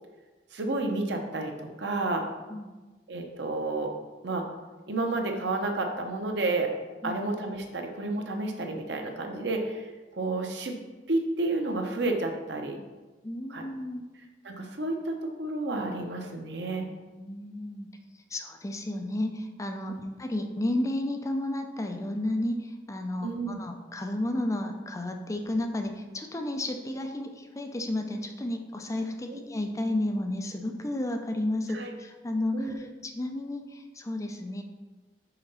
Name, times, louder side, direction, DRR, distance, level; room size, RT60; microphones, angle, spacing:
voice 1, 0.5-2.2 3.1-3.9 4.2-4.4 4.9-6.7 7.0-10.8 11.1-12.8 13.5-13.6 14.4-16.9 19.9-20.0 23.2-23.6 29.3-29.4 31.7-31.9 32.5-32.8, right 2 dB, 80° right, 3 dB, 0.9 m, -31 dB
voice 2, 13.2-14.0 17.2-17.9 18.3-34.6, left 1 dB, 20° left, 4 dB, 0.5 m, -32 dB
5.8 x 3.8 x 5.5 m, 1.2 s
head